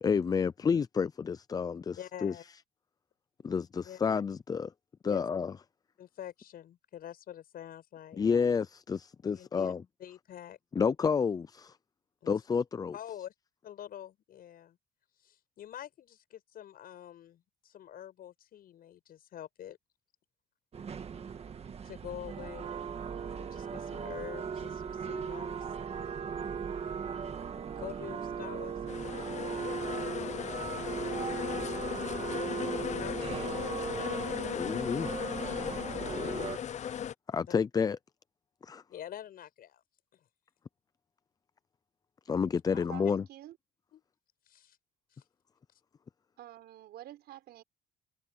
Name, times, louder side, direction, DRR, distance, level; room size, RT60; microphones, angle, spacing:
voice 1, 0.0-2.3 3.4-4.7 5.0-5.5 8.2-9.8 10.8-11.7 12.3-12.9 34.5-35.1 36.0-36.5 37.3-38.0 38.6-38.8 42.3-43.3, left 6 dB, 20° left, 0.4 m, -30 dB
voice 2, 2.0-2.4 3.8-4.0 5.1-5.3 6.0-8.2 9.3-9.7 10.0-10.6 12.2-12.3 12.9-13.3 13.6-14.8 15.2-19.8 21.8-22.9 23.2-25.7 27.8-30.5 32.1-33.8 37.5-37.6 38.9-39.8 40.1-40.3 42.7-42.9 43.9-44.0 44.5-44.8 45.1-45.2, left 11 dB, 60° left, 7.8 m, -47 dB
sound 1, 20.7-36.6, right 6 dB, 35° right, 1.8 m, -38 dB
sound 2, 28.9-37.1, left 9 dB, 45° left, 0.8 m, -37 dB
voice 3, 46.4-47.6, right 13 dB, 70° right, 5.7 m, -48 dB
cardioid pair, 110°, 17 cm